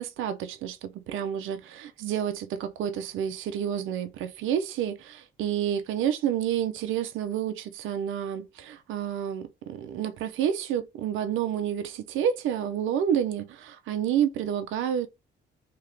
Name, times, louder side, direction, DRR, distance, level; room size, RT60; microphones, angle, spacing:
voice 1, 0.0-15.1, right 9 dB, 85° right, 0.6 m, -29 dB
3.0 x 2.9 x 3.4 m
cardioid pair, 90°, 20 cm